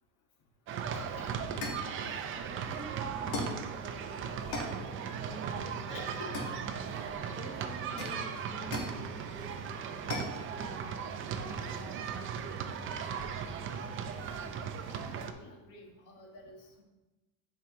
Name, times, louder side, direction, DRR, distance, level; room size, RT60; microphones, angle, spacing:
sound 1, 0.7-15.3, right 7 dB, 35° right, 0.5 m, -37 dB
voice 1, 0.9-1.3 5.9-6.2 14.9-16.8, left 3 dB, 55° left, 1 dB, 1.5 m, -50 dB
sound 2, 1.6-1.9 3.3-3.7 4.5-4.8 6.3-7.0 8.0-9.0 10.1-10.4, left 2 dB, 80° left, 1.8 m, -38 dB
voice 2, 1.8-4.2 4.5-6.0 6.4-6.8 7.4-10.9 11.3-12.4 12.9-13.7, right 2 dB, 10° right, 0 dB, 0.8 m, -50 dB
8.6 x 4.8 x 3.1 m, 1.1 s
cardioid pair, 150°, 37 cm